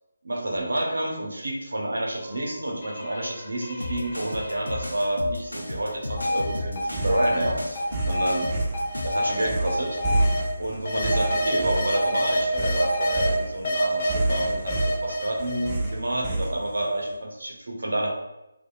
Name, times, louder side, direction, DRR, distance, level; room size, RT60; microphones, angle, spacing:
voice 1, 0.2-8.5 9.0-10.0 10.6-18.1, right 1 dB, 65° right, 0 dB, 0.6 m, -29 dB
sound 1, 2.2-5.0 5.5-10.4 10.8-13.3 13.6-15.9, equal, 35° left, 0.6 m, -28 dB
sound 2, 3.8-9.3, left 1 dB, 80° left, 0.4 m, -34 dB
sound 3, 6.9-16.9, right 2 dB, 15° right, 0.4 m, -29 dB
2.7 x 2.2 x 2.3 m, 0.98 s
figure-of-eight pair, 155°, 0 cm